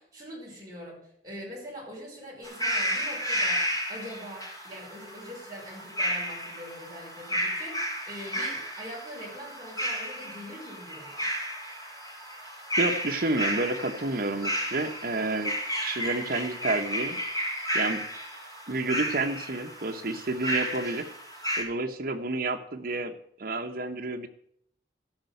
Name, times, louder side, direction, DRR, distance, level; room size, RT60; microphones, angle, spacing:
voice 1, 0.0-11.3, equal, 20° right, -4 dB, 5.5 m, -43 dB
sound 1, 2.4-21.6, equal, 20° left, 4.1 m, -32 dB
voice 2, 12.8-15.5 15.8-17.2 17.7-18.0 18.7-21.1 21.6-24.3, right 2 dB, 55° right, 5 dB, 1.1 m, -30 dB
13.0 x 5.7 x 8.0 m, 0.69 s
head